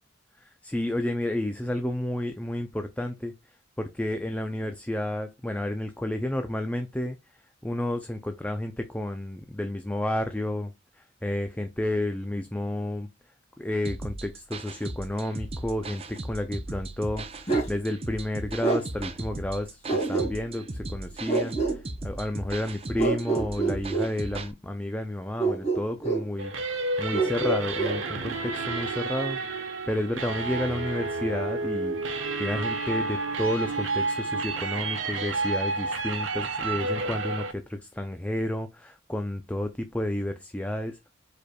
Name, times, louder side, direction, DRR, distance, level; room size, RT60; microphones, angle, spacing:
voice 1, 0.4-3.3 3.8-7.2 7.6-13.1 13.6-17.3 17.7-41.0, left 1 dB, 5° left, 0.4 m, -31 dB
sound 1, 13.8-24.5, right 2 dB, 30° right, 0.7 m, -38 dB
Bark, 17.5-17.7 18.6-18.8 19.9-20.6 21.3-21.8 23.0-24.1 25.4-26.3 27.1-28.0, right 4 dB, 35° left, 2.4 m, -26 dB
sound 2, 26.4-37.5, right 3 dB, 75° right, 1.1 m, -30 dB
5.0 x 4.3 x 2.3 m
head